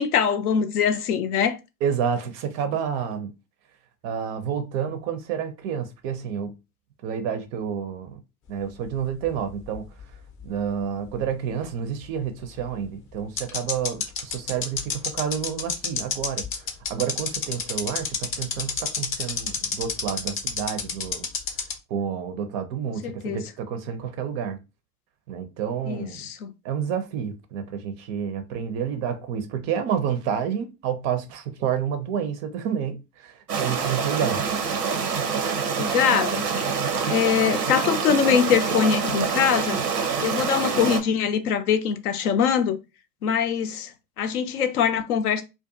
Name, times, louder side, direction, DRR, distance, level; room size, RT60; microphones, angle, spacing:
voice 1, 0.0-1.6 23.0-23.4 25.8-26.5 35.8-36.5 37.1-39.8 40.2-42.8 43.2-45.4, left 7 dB, 70° left, 0.6 m, -23 dB
voice 2, 1.8-3.3 4.0-6.5 7.0-8.2 8.5-9.9 10.4-21.3 21.9-24.6 25.3-26.2 26.6-34.4, right 8 dB, 35° right, 0.4 m, -29 dB
sound 1, 8.9-10.4 10.7-10.8 12.6-12.7 13.4-21.7, left 6 dB, 30° left, 0.6 m, -28 dB
sound 2, 33.5-41.0, right 6 dB, 90° right, 0.6 m, -26 dB
2.4 x 2.2 x 2.6 m
figure-of-eight pair, 80°, 46 cm